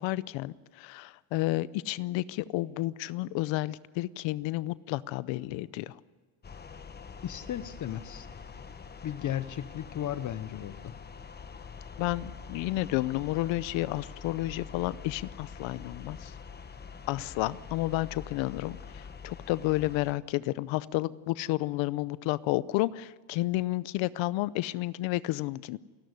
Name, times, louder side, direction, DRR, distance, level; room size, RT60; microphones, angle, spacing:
voice 1, 0.0-5.9 12.0-16.3 17.1-25.8, left 17 dB, 80° left, 19 dB, 0.7 m, -31 dB
sound 1, 6.4-20.1, left 5 dB, 20° left, 1.1 m, -45 dB
voice 2, 7.2-8.3 9.0-11.0, left 11 dB, 40° left, 14 dB, 0.8 m, -35 dB
28.5 x 13.0 x 9.6 m, 1.4 s
cardioid pair, 130°, 45 cm